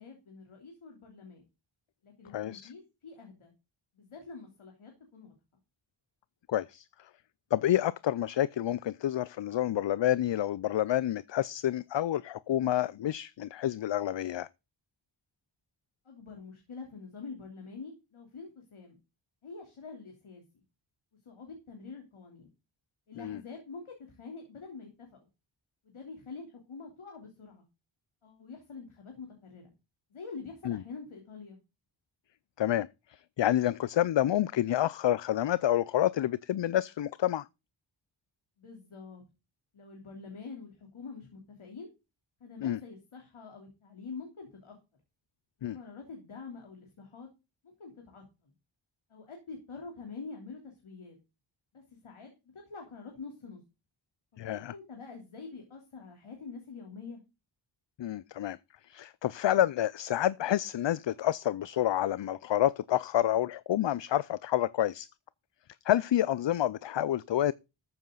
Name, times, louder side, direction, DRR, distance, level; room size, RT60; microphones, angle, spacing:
voice 1, 0.0-1.4 2.0-3.5 4.0-5.3 16.1-19.0 19.4-20.4 21.3-22.5 23.1-25.2 25.9-27.6 28.2-29.7 30.1-31.6 38.6-39.2 39.7-41.9 42.4-44.8 45.6-47.3 47.6-48.5 49.1-51.2 51.7-52.3 52.7-53.6 54.5-57.2, left 4 dB, 85° left, 3.5 m, -46 dB
voice 2, 2.3-2.7 6.5-7.1 7.5-14.5 23.2-23.4 30.6-30.8 32.6-37.5 42.6-42.8 45.6-45.8 54.4-54.7 58.0-58.6 58.9-65.1 65.8-67.5, left 12 dB, 65° left, 0.6 m, -29 dB
14.0 x 9.1 x 3.9 m
wide cardioid pair, 85°, 48 cm